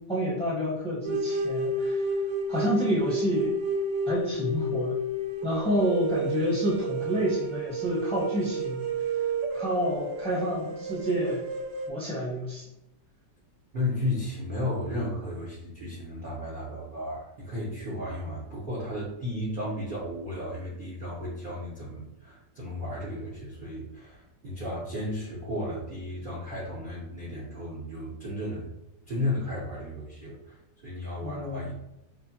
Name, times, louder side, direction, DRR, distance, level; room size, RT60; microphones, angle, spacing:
voice 1, 0.1-2.0 2.5-3.5 4.1-4.9 5.4-8.8 9.5-11.4 11.9-12.6 31.2-31.7, equal, 5° left, -6 dB, 0.7 m, -28 dB
sound 1, 1.0-11.9, right 2 dB, 75° right, 1.2 m, -31 dB
voice 2, 13.7-28.7 29.1-31.7, left 1 dB, 45° right, -7 dB, 0.6 m, -34 dB
5.0 x 2.2 x 2.8 m, 0.89 s
omnidirectional pair, 2.0 m